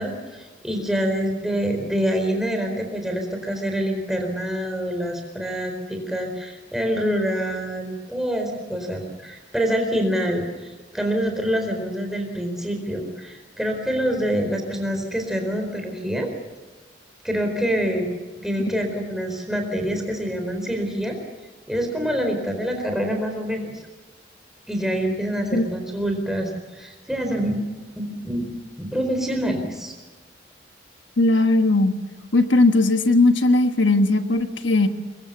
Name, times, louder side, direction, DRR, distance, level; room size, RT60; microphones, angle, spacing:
voice 1, 0.0-16.3 17.2-18.1 18.4-21.2 21.7-23.8 24.7-27.6 28.0-28.4 28.8-29.9, equal, ahead, 3 dB, 4.3 m, -26 dB
voice 2, 31.2-31.9 32.3-34.9, left 2 dB, 90° left, 7 dB, 1.4 m, -18 dB
24.0 x 22.0 x 7.0 m, 1.3 s
head